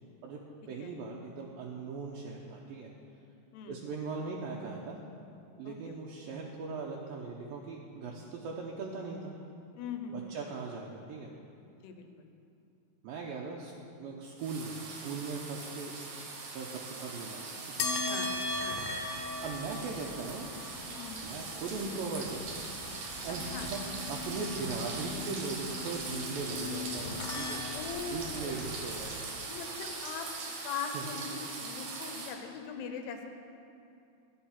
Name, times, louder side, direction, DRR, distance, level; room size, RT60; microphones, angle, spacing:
voice 1, 0.7-2.9 3.7-5.0 5.6-9.4 10.1-11.3 13.0-15.9 16.3-17.9 19.4-20.5 21.2-22.5 23.2-27.6 28.1-29.2 30.9-31.0, right 4 dB, 75° right, -2 dB, 2.3 m, -39 dB
voice 2, 9.8-10.4 11.8-12.3 18.1-18.3 18.6-18.8 20.9-21.5 23.5-23.7 27.7-28.6 29.5-30.3 30.6-33.3, left 5 dB, 85° left, 5 dB, 3.0 m, -41 dB
sound 1, 14.4-32.4, right 4 dB, 60° right, 2.2 m, -41 dB
sound 2, 17.8-28.3, left 3 dB, 70° left, 2.5 m, -39 dB
sound 3, 18.2-29.2, equal, 30° left, 2.6 m, -50 dB
11.5 x 9.5 x 5.8 m, 2.7 s
omnidirectional pair, 4.6 m